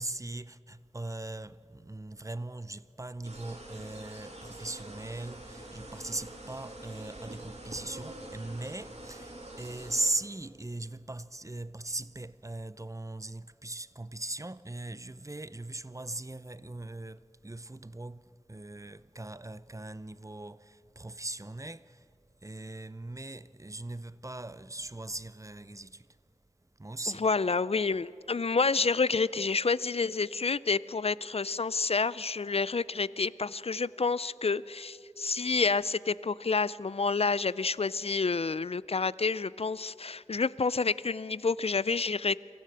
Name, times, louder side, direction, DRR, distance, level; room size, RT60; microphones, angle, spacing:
voice 1, 0.0-22.1 22.4-26.2 26.8-27.3, right 2 dB, 25° right, 0.5 m, -39 dB
sound 1, 3.2-10.1, right 1 dB, 60° right, 2.6 m, -45 dB
voice 2, 27.2-42.4, left 4 dB, 55° left, 0.4 m, -29 dB
24.0 x 15.0 x 7.7 m
wide cardioid pair, 45°, 12 cm